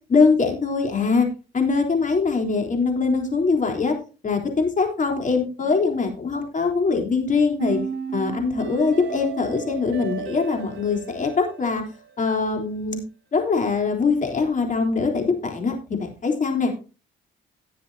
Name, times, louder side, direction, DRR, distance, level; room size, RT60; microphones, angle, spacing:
voice 1, 0.1-1.3 1.5-3.9 4.2-7.8 8.1-11.8 12.2-13.0 13.3-16.7, left 4 dB, 40° left, 3 dB, 3.7 m, -22 dB
sound 1, 7.6-12.6, right 7 dB, 65° right, 2.6 m, -34 dB
18.5 x 7.3 x 2.8 m, 0.33 s
cardioid pair, 90°, 20 cm